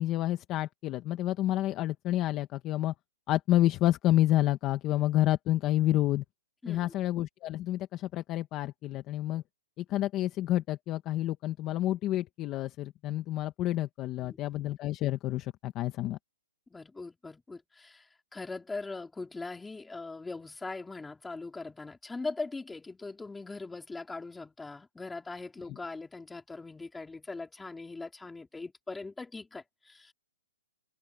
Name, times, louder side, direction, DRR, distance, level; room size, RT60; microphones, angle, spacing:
voice 1, 0.0-2.9 3.3-6.2 6.7-9.4 9.8-16.2, left 14 dB, 20° left, 1.1 m, -29 dB
voice 2, 6.6-6.9 14.2-14.5 16.7-30.1, left 3 dB, 5° left, 3.3 m, -41 dB
open air
hypercardioid pair, 160°, 0 cm